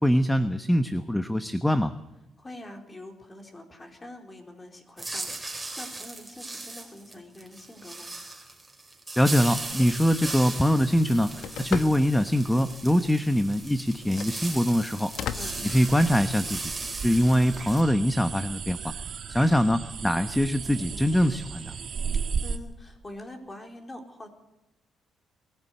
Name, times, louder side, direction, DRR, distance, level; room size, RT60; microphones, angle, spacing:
voice 1, 0.0-1.9 9.2-11.3 11.6-15.1 15.6-16.7 17.0-18.9 19.3-21.7, equal, 5° left, 10 dB, 1.0 m, -23 dB
voice 2, 2.4-8.1 15.3-15.6 20.9-21.1 22.1-24.3, left 1 dB, 20° left, 3 dB, 4.4 m, -45 dB
sound 1, 5.0-17.8, right 2 dB, 15° right, 4.4 m, -38 dB
Telephone, 9.5-16.4, left 9 dB, 80° left, 1.2 m, -40 dB
sound 2, 15.4-22.6, right 6 dB, 55° right, 1.7 m, -35 dB
22.0 x 15.5 x 8.2 m, 0.94 s
cardioid pair, 90°, 0 cm